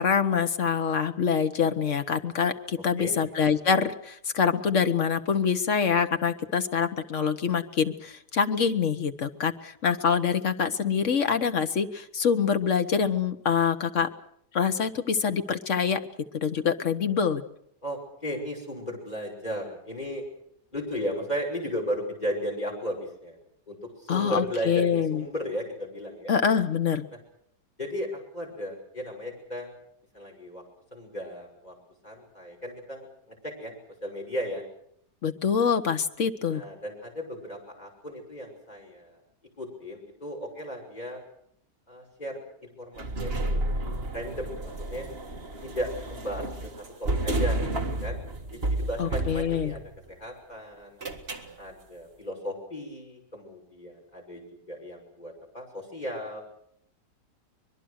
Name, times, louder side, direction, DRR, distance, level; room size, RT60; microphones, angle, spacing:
voice 1, 0.0-14.1 14.5-16.0 16.3-17.4 24.1-25.2 26.3-27.1 35.2-36.6 49.0-49.7, left 6 dB, 50° left, 8 dB, 1.4 m, -25 dB
voice 2, 17.8-20.2 20.7-23.4 23.7-26.3 27.8-29.7 30.1-30.6 30.9-31.7 32.0-33.7 34.0-34.6 36.5-39.2 39.6-41.2 41.9-45.1 45.6-46.7 47.0-48.2 48.5-49.8 50.1-51.0 51.6-56.4, equal, 25° left, 0 dB, 6.0 m, -35 dB
sound 1, 43.0-50.0 51.0-51.5, right 2 dB, 35° right, 1.9 m, -31 dB
24.5 x 21.5 x 6.5 m, 0.70 s
omnidirectional pair, 1.8 m